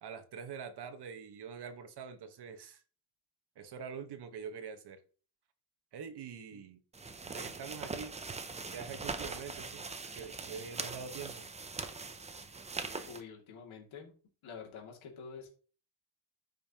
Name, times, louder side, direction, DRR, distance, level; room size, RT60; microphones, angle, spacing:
voice 1, 0.0-2.8 3.6-5.0 5.9-6.8 7.3-8.1 8.7-9.8 10.1-11.4, right 6 dB, 55° right, 8 dB, 1.3 m, -45 dB
sound 1, 6.9-13.2, right 4 dB, 15° right, 0.5 m, -42 dB
voice 2, 13.0-14.1 14.4-15.5, left 6 dB, 75° left, 0 dB, 2.5 m, -48 dB
14.0 x 5.4 x 2.9 m, 0.39 s
cardioid pair, 170°, 48 cm